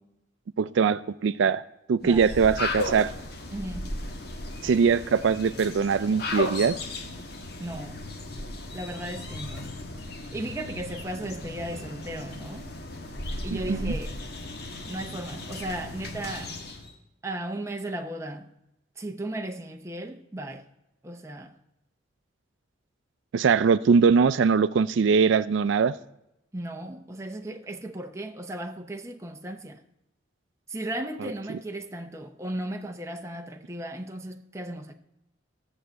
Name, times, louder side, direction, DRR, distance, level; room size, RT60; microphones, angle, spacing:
voice 1, 0.6-1.6 1.9-3.1 4.6-6.8 13.5-14.0 23.3-25.9 31.2-31.6, right 5 dB, 70° right, 0.4 m, -22 dB
sound 1, 2.0-16.9, left 2 dB, 55° left, 1.3 m, -36 dB
voice 2, 3.5-3.9 7.6-8.0 8.7-9.8 10.3-12.6 13.4-14.2 14.9-16.5 17.2-18.5 19.0-20.6 21.0-21.5 26.5-29.8 30.7-34.9, right 1 dB, 15° right, 0.6 m, -36 dB
14.0 x 6.4 x 7.9 m
head